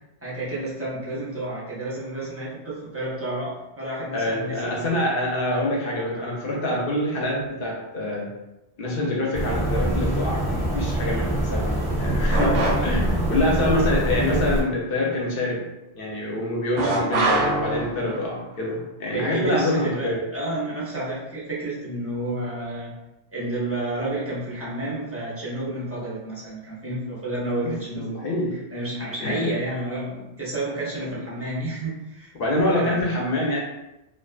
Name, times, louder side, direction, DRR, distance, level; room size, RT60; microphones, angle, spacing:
voice 1, 0.2-5.0 6.1-6.4 12.3-12.9 17.0-17.4 19.1-22.9 23.3-28.2 28.7-32.3 32.6-33.0, right 2 dB, 20° right, -8 dB, 0.5 m, -30 dB
voice 2, 4.1-8.3 8.8-12.6 12.8-15.7 15.9-20.2 27.6-27.7 28.1-28.6 29.2-29.5 31.1-31.2 32.3-33.6, left 1 dB, 60° left, -3 dB, 0.8 m, -25 dB
sound 1, 9.3-14.6, right 1 dB, 5° left, 0.9 m, -24 dB
sound 2, 12.3-13.2 16.8-18.3, right 2 dB, 65° right, 0.7 m, -24 dB
2.4 x 2.4 x 2.3 m, 0.95 s
omnidirectional pair, 1.2 m